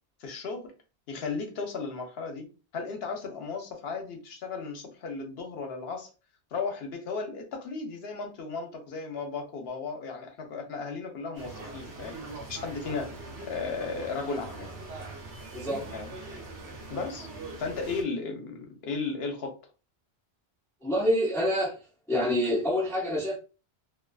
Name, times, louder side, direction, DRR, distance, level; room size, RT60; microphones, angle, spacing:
voice 1, 0.2-0.7 1.1-2.5 2.7-6.1 6.5-12.2 12.5-13.1 13.5-14.7 15.9-16.1 16.9-17.3 17.6-19.5, left 4 dB, 70° left, 3 dB, 0.9 m, -35 dB
sound 1, 11.3-18.0, right 2 dB, 75° right, 1.0 m, -42 dB
voice 2, 15.5-15.9 20.8-21.8 22.1-23.4, equal, 5° left, -2 dB, 0.4 m, -27 dB
2.4 x 2.3 x 2.2 m, 0.33 s
omnidirectional pair, 1.1 m